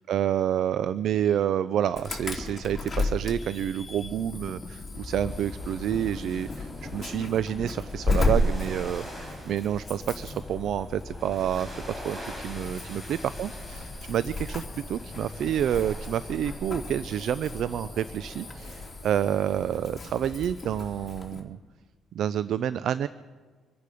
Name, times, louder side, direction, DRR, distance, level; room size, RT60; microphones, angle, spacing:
voice 1, 0.1-21.6 22.1-23.1, right 10 dB, 70° right, 15 dB, 0.4 m, -29 dB
Insect / Alarm, 2.0-21.4, left 2 dB, 25° left, 2.8 m, -34 dB
sound 1, 5.3-18.9, equal, 15° right, 4.7 m, -44 dB
26.0 x 10.5 x 5.0 m, 1.5 s
cardioid pair, 95°, 0 cm